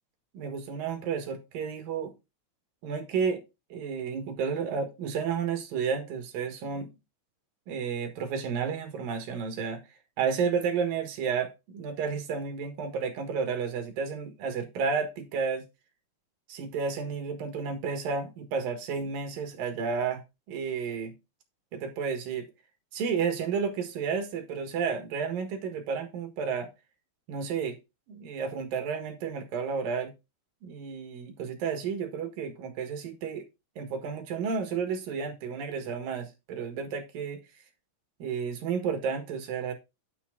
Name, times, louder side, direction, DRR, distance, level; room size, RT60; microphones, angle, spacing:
voice 1, 0.3-2.1 2.8-3.4 3.7-6.9 7.7-9.8 10.2-15.6 16.5-20.2 20.5-21.1 21.7-22.5 22.9-26.7 27.3-27.8 28.1-30.1 30.6-33.4 33.8-37.4 38.2-39.7, right 6 dB, 60° right, 2.9 m, -31 dB
9.8 x 5.7 x 3.9 m
omnidirectional pair, 5.2 m